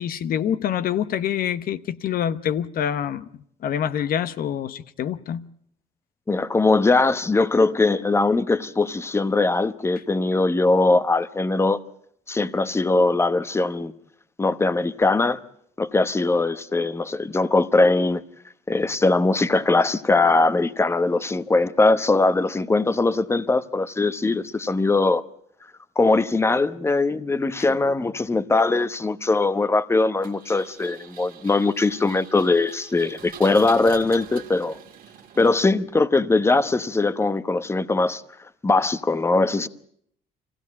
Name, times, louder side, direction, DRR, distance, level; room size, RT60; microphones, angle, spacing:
voice 1, 0.0-3.3 3.6-5.4, left 9 dB, 60° left, 0.9 m, -26 dB
voice 2, 6.3-11.8 12.3-13.9 14.4-15.4 15.8-18.2 18.7-25.2 26.0-34.8 35.4-38.2 38.6-39.7, left 3 dB, 15° left, 0.9 m, -21 dB
Engine, 30.2-35.9, right 8 dB, 55° right, 1.9 m, -44 dB
24.5 x 16.5 x 8.4 m
cardioid pair, 110°, 17 cm